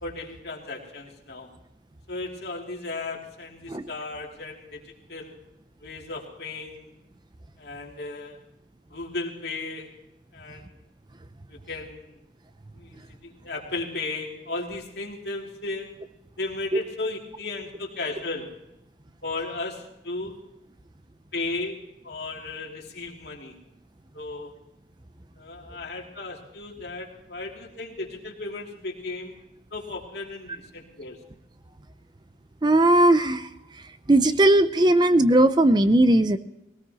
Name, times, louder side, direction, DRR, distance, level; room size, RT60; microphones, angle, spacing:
voice 1, 0.0-1.5 2.1-4.8 5.1-5.4 5.8-6.9 7.6-8.4 8.9-9.9 10.3-10.8 11.5-12.2 12.7-15.9 16.4-18.5 19.2-20.4 21.3-21.8 22.0-23.5 24.1-24.5 25.4-29.4 29.7-31.2, left 3 dB, 65° left, -1 dB, 3.0 m, -35 dB
voice 2, 32.6-33.5 34.1-36.4, right 1 dB, 25° right, 11 dB, 0.5 m, -18 dB
20.0 x 18.0 x 3.0 m, 0.85 s
head